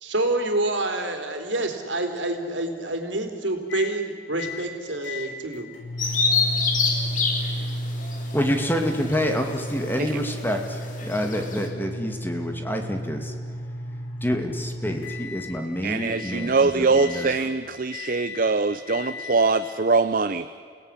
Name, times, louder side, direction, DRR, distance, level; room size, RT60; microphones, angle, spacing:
voice 1, 0.0-5.7, right 2 dB, 80° right, 5 dB, 3.6 m, -27 dB
sound 1, 3.7-4.0 4.4-4.7 5.0-15.6 16.0-16.5 16.9-17.5 17.9-18.5 18.9-19.4, left 1 dB, 90° left, 6.6 m, -34 dB
Bird vocalization bird call bird song, 6.0-11.7, left 4 dB, 45° left, 3.7 m, -28 dB
voice 2, 8.3-13.3 14.2-16.6 16.9-17.3, equal, 10° left, 4 dB, 2.3 m, -27 dB
voice 3, 15.8-20.5, right 4 dB, 50° right, 11 dB, 0.7 m, -23 dB
29.5 x 17.5 x 10.0 m, 2.2 s
head